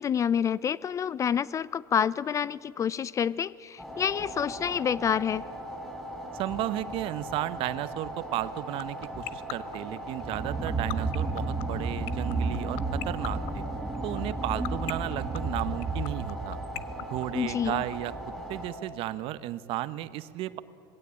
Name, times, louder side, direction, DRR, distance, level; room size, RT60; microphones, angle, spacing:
voice 1, 0.0-5.4 17.3-17.8, left 8 dB, 30° left, 20 dB, 0.4 m, -28 dB
sound 1, 3.8-18.7, right 1 dB, 5° left, 6.2 m, -39 dB
voice 2, 6.3-13.6 14.0-16.6 17.1-18.1 18.5-20.6, right 14 dB, 55° right, 15 dB, 0.8 m, -34 dB
sound 2, 8.3-17.9, left 18 dB, 60° left, 0.8 m, -35 dB
sound 3, 10.2-16.7, right 3 dB, 15° right, 1.4 m, -32 dB
20.5 x 16.5 x 8.7 m, 2.6 s
supercardioid pair, 105°, 11 cm